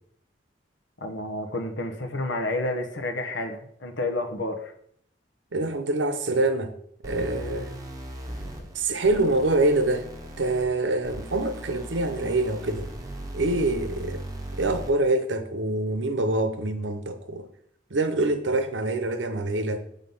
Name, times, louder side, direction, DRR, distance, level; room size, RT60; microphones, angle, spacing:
voice 1, 1.0-4.7 8.5-8.6, left 2 dB, 80° left, 6 dB, 1.0 m, -30 dB
voice 2, 5.5-6.7 7.0-7.8 8.7-10.1 10.4-12.9 13.3-14.2 14.5-17.5 17.9-19.8, right 2 dB, 85° right, 9 dB, 0.9 m, -25 dB
sound 1, 7.0-15.0, right 1 dB, 20° right, 0.8 m, -38 dB
7.5 x 3.7 x 5.4 m, 0.68 s
head